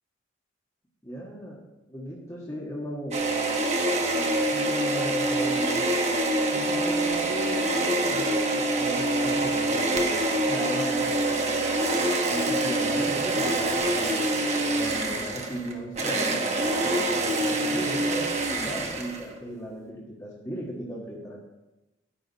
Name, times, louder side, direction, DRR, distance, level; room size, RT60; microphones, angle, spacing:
voice 1, 1.0-1.6 1.9-3.2 4.0-5.8 6.5-11.7 12.3-14.2 14.7-21.4, equal, 15° left, -5 dB, 1.6 m, -36 dB
sound 1, 3.1-19.4, right 2 dB, 35° right, 1.3 m, -25 dB
12.0 x 10.0 x 4.1 m, 1.0 s
head